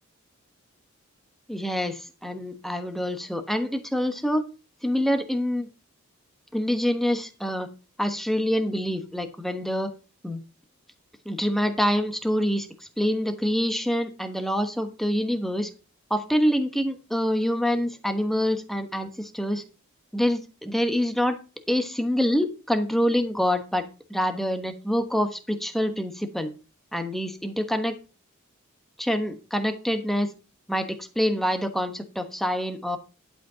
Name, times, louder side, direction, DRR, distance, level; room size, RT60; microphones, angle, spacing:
voice 1, 1.5-4.4 4.8-5.7 6.5-7.7 8.0-9.9 10.2-10.4 11.2-12.7 13.0-15.7 16.1-19.6 20.1-21.4 21.7-23.8 24.1-26.5 26.9-28.0 29.0-30.3 30.7-33.0, equal, ahead, 7 dB, 1.1 m, -26 dB
11.5 x 5.1 x 5.6 m, 0.32 s
head